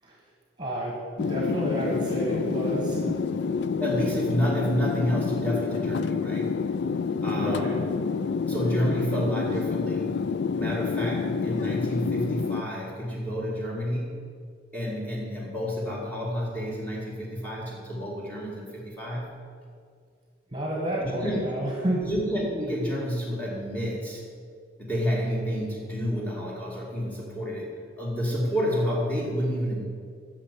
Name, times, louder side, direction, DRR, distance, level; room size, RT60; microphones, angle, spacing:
voice 1, 0.6-3.2 7.3-7.7 20.5-22.0, right 1 dB, 25° right, -2 dB, 1.7 m, -30 dB
sound 1, 1.2-12.6, left 5 dB, 70° left, 0.4 m, -28 dB
voice 2, 3.8-6.6 7.2-7.9 8.4-10.2 10.5-14.2 14.7-19.3 21.0-21.5 22.0-24.2 24.8-27.7 28.0-29.8, equal, 10° left, -4 dB, 2.4 m, -30 dB
9.7 x 6.7 x 8.3 m, 2.1 s
head